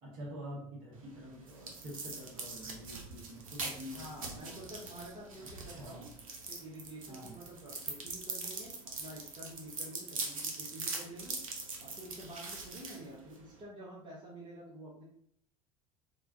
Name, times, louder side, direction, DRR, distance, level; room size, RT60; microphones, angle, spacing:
voice 1, 0.0-4.6 5.4-6.1 7.1-7.4, equal, 50° right, -5 dB, 1.3 m, -47 dB
sound 1, 0.9-13.6, right 3 dB, 75° right, 0.6 m, -43 dB
voice 2, 3.9-6.1 6.5-8.7 9.0-11.4 11.8-15.0, right 1 dB, 25° right, -6 dB, 0.9 m, -49 dB
3.0 x 2.2 x 2.6 m, 0.68 s
figure-of-eight pair, 70°, 18 cm